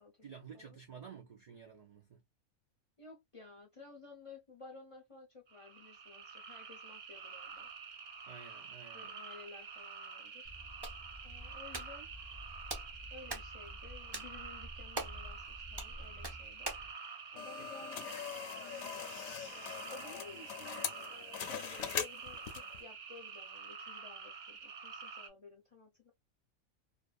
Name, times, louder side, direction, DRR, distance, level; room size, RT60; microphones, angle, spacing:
voice 1, 0.2-2.2 8.3-9.1 17.3-17.7, right 6 dB, 70° right, 0.3 m, -52 dB
voice 2, 3.0-7.7 8.9-10.5 11.2-12.1 13.1-16.7 17.3-19.1 19.9-26.1, left 4 dB, 35° left, 0.5 m, -55 dB
sound 1, 5.5-25.3, right 5 dB, 55° right, 0.9 m, -48 dB
Hands, 10.4-16.9, right 1 dB, 25° right, 0.7 m, -45 dB
sound 2, 17.4-22.8, left 8 dB, 75° left, 1.0 m, -42 dB
2.4 x 2.4 x 2.3 m
omnidirectional pair, 1.4 m